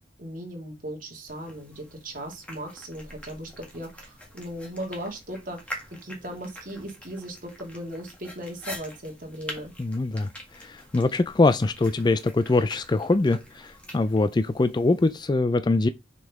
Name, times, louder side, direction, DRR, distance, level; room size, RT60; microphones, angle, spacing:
voice 1, 0.2-9.7, equal, 45° right, 2.2 m, -37 dB
sound 1, 1.3-15.3, equal, 5° left, 1.9 m, -45 dB
voice 2, 9.8-10.3 10.5-15.9, left 2 dB, 20° left, 0.3 m, -23 dB
6.4 x 5.3 x 3.6 m
head